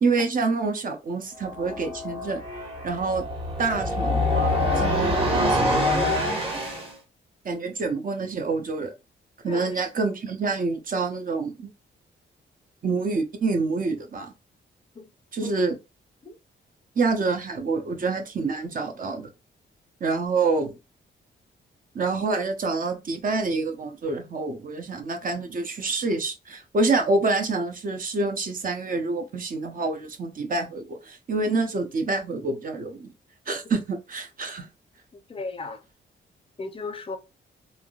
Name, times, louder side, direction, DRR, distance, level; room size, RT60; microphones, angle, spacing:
voice 1, 0.0-2.4 2.8-3.3 3.6-5.9 7.4-8.9 9.4-11.7 12.8-14.3 15.3-15.8 17.0-19.3 20.0-20.8 21.9-33.1 33.5-34.7, right 3 dB, 45° right, 0.7 m, -27 dB
sound 1, 1.5-6.9, left 1 dB, 25° right, 1.2 m, -25 dB
voice 2, 9.4-9.8 14.9-15.1 15.4-15.5 16.2-16.3 35.3-35.8 36.6-37.2, left 3 dB, 25° left, 0.5 m, -35 dB
3.4 x 2.6 x 2.3 m
cardioid pair, 120°, 20 cm